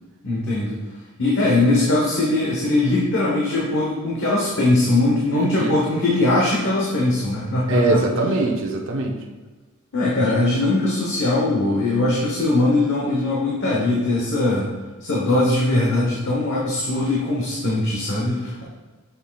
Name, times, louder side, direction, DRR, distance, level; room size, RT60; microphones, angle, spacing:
voice 1, 0.2-0.8 1.2-8.0 9.9-14.7 15.0-18.6, left 2 dB, 60° left, -5 dB, 1.1 m, -20 dB
voice 2, 5.4-5.8 7.7-9.2, right 2 dB, 60° right, 0 dB, 0.8 m, -22 dB
7.1 x 7.1 x 2.4 m, 1.3 s
head